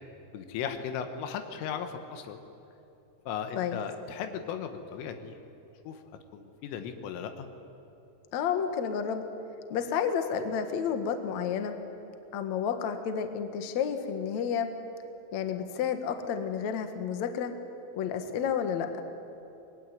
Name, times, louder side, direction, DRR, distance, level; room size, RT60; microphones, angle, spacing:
voice 1, 0.3-2.4 3.3-5.4 5.9-6.0 6.3-7.5, left 7 dB, 85° left, 7 dB, 4.0 m, -36 dB
voice 2, 8.3-9.2 9.7-11.8 12.3-14.7 15.3-17.5 18.0-19.0, left 7 dB, 65° left, 7 dB, 1.8 m, -30 dB
25.0 x 20.5 x 9.9 m, 2.9 s
omnidirectional pair, 5.6 m